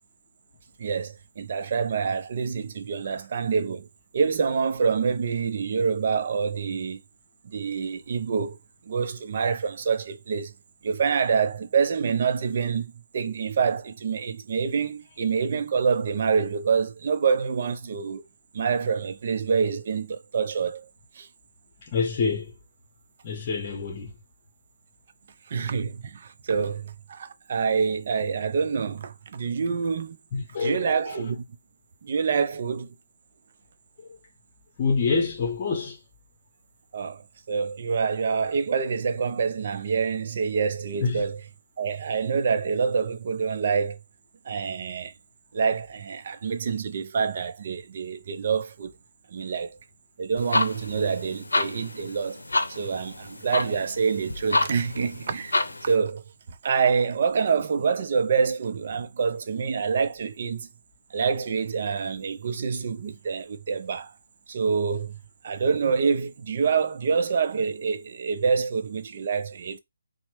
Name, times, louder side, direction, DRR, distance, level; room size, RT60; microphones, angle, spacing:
voice 1, 0.8-3.9 4.1-7.0 7.4-8.6 8.8-10.5 10.8-18.3 18.5-20.9 21.2-21.3 25.5-30.2 30.6-31.4 32.0-32.9 36.9-41.4 41.8-44.0 44.4-45.1 45.5-48.9 49.3-49.8 50.2-52.4 52.7-60.7 61.1-64.1 64.5-65.2 65.4-69.8, right 5 dB, 50° right, 0.5 m, -26 dB
voice 2, 21.8-22.5 23.2-24.1 30.3-31.2 34.0-34.2 34.8-36.0 41.0-41.2, left 4 dB, 35° left, 0.8 m, -27 dB
sound 1, 50.4-56.0, left 2 dB, 85° left, 0.6 m, -29 dB
3.0 x 2.1 x 3.1 m
figure-of-eight pair, 145°, 0 cm